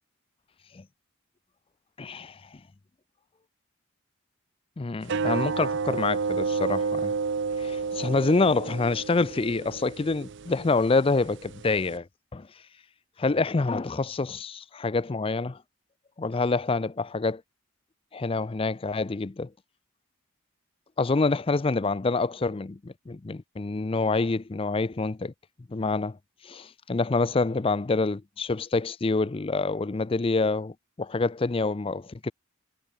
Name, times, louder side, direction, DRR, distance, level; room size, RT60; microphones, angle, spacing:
voice 1, 2.0-2.6 4.8-7.1 7.6-12.1 12.3-12.5 13.2-15.6 16.2-17.4 18.1-19.5 21.0-25.3 25.7-26.2 26.4-32.3, left 3 dB, 25° left, 0.4 m, -27 dB
sound 1, 5.0-12.0, right 4 dB, 55° right, 0.6 m, -31 dB
head